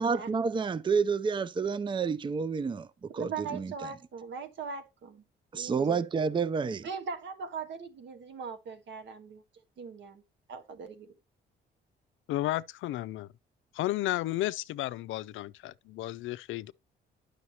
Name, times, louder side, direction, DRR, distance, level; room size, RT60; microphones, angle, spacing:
voice 1, 0.0-3.7 5.5-6.9, right 5 dB, 25° right, 0.5 m, -29 dB
voice 2, 3.1-5.2 5.5-6.0 6.8-9.4 9.8-10.2 10.5-11.1, right 5 dB, 65° right, 1.4 m, -40 dB
voice 3, 12.3-13.3 13.7-16.7, left 15 dB, 80° left, 0.4 m, -33 dB
9.5 x 6.5 x 2.9 m
cardioid pair, 90°, 20 cm